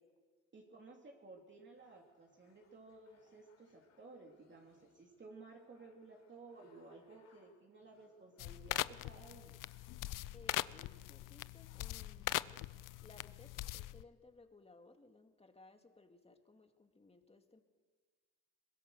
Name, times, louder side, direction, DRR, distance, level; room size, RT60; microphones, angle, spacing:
voice 1, 0.5-9.5, right 3 dB, 35° right, 0 dB, 3.0 m, -56 dB
sound 1, 1.7-13.1, left 5 dB, 55° left, 4.0 m, -73 dB
sound 2, 8.4-14.0, left 16 dB, 75° left, 0.6 m, -41 dB
voice 2, 10.3-12.6 13.0-17.6, left 3 dB, 20° left, 5 dB, 2.2 m, -61 dB
22.5 x 21.0 x 6.5 m, 1.5 s
cardioid pair, 90°, 32 cm